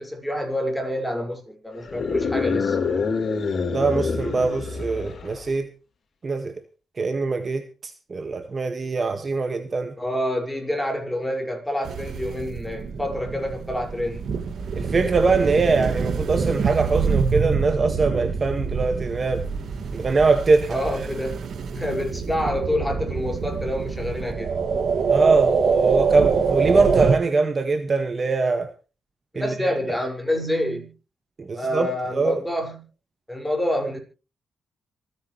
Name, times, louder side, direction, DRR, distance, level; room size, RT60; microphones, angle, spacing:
voice 1, 0.0-2.8 10.0-14.3 20.7-21.5 21.7-24.6 29.3-30.9 31.5-32.9 33.3-34.0, left 1 dB, 5° left, 5.7 m, -27 dB
sound 1, 1.8-5.5, left 5 dB, 55° left, 3.9 m, -26 dB
voice 2, 3.7-5.7 6.2-6.5 7.0-9.9 14.8-19.4 19.9-20.8 25.1-28.7 29.4-29.7 31.4-32.4, right 4 dB, 35° right, 1.7 m, -22 dB
sound 2, 11.8-27.2, right 5 dB, 65° right, 2.2 m, -25 dB
26.5 x 9.7 x 3.2 m
cardioid pair, 95°, 0 cm